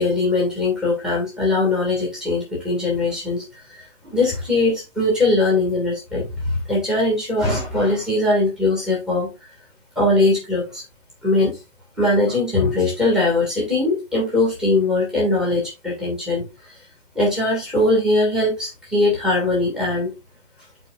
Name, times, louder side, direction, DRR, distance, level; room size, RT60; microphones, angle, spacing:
voice 1, 0.0-9.3 10.0-10.8 11.2-11.6 12.0-16.5 17.2-20.1, left 2 dB, ahead, 1.6 m, -21 dB
11.0 x 4.3 x 2.3 m
hypercardioid pair, 155°, 38 cm